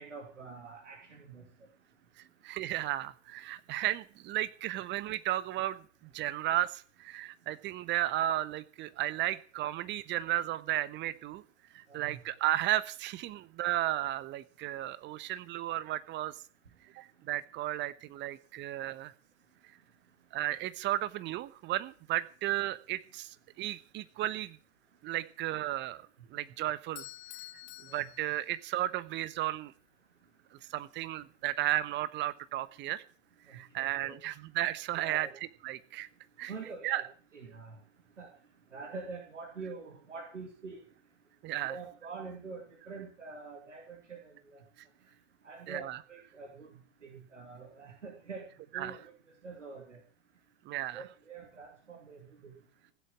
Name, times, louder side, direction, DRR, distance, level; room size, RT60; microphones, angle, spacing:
voice 1, 0.0-1.4 11.9-12.2 27.9-28.1 33.5-34.2 35.0-35.4 36.5-37.1 37.3-37.8 38.2-38.3 38.7-40.8 41.6-44.6 45.4-46.7 47.0-48.5 48.7-49.1 49.4-50.0 50.9-52.5, right 4 dB, 75° right, 2 dB, 2.7 m, -45 dB
voice 2, 2.4-11.4 11.7-16.4 16.9-19.1 20.3-24.6 25.0-27.1 27.9-29.7 30.7-33.0 33.5-35.3 35.6-36.1 36.4-36.5 36.8-37.0 41.4-41.8 45.7-46.0 48.7-49.0 50.6-51.0, right 14 dB, 30° right, 16 dB, 1.0 m, -34 dB
Bell / Doorbell, 27.0-29.0, left 16 dB, 35° left, 0.9 m, -49 dB
16.0 x 8.1 x 7.3 m, 0.42 s
figure-of-eight pair, 95°, 37 cm